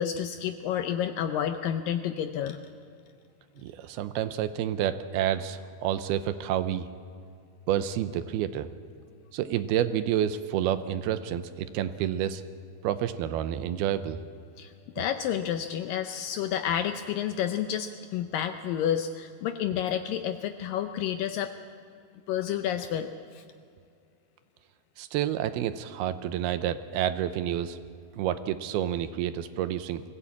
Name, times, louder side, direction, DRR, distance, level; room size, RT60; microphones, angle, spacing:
voice 1, 0.0-2.6 14.6-21.5 22.3-23.4, left 9 dB, 80° left, 8 dB, 2.1 m, -30 dB
voice 2, 3.6-6.9 7.7-8.7 9.3-12.4 12.8-14.2 25.0-27.8 28.2-30.0, right 11 dB, 80° right, 11 dB, 2.6 m, -29 dB
22.5 x 16.0 x 8.4 m, 2.3 s
omnidirectional pair, 4.6 m